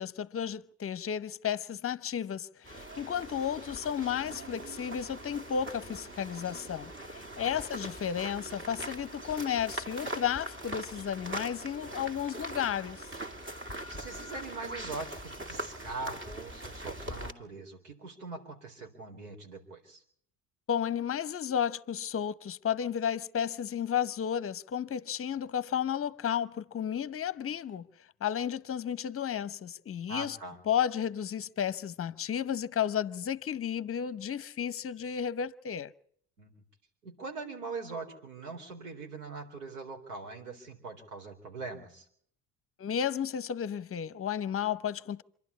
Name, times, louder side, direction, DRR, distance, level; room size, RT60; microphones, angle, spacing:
voice 1, 0.0-13.1 20.7-27.9 28.2-30.4 30.7-35.9 42.8-45.2, left 9 dB, 30° left, 0.8 m, -33 dB
sound 1, 2.6-17.3, right 1 dB, 25° right, 2.2 m, -41 dB
voice 2, 13.9-20.0 30.1-30.6 36.4-36.6 37.0-42.1, right 3 dB, 85° right, 4.2 m, -42 dB
26.0 x 12.0 x 8.4 m
hypercardioid pair, 65°, 45 cm